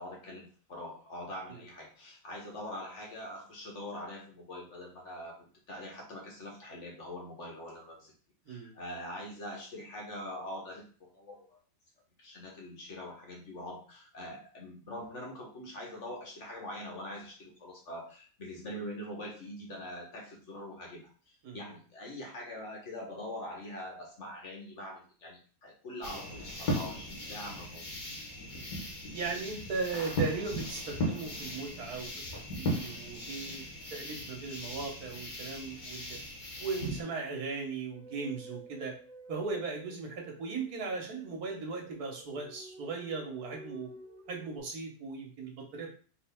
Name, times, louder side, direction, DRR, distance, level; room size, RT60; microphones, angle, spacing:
voice 1, 0.0-8.1 8.5-11.6 12.2-21.1 21.5-27.9, left 1 dB, 50° left, -1 dB, 1.6 m, -43 dB
sound 1, 26.0-37.0, equal, 75° left, 1.8 m, -37 dB
voice 2, 29.1-32.1 32.5-33.6 33.9-36.2 36.6-38.9 39.3-43.9 44.3-45.9, right 4 dB, 80° right, 1 dB, 1.6 m, -37 dB
sound 2, 37.9-44.6, right 2 dB, 35° right, 1.3 m, -51 dB
4.0 x 3.4 x 3.5 m, 0.40 s
omnidirectional pair, 1.6 m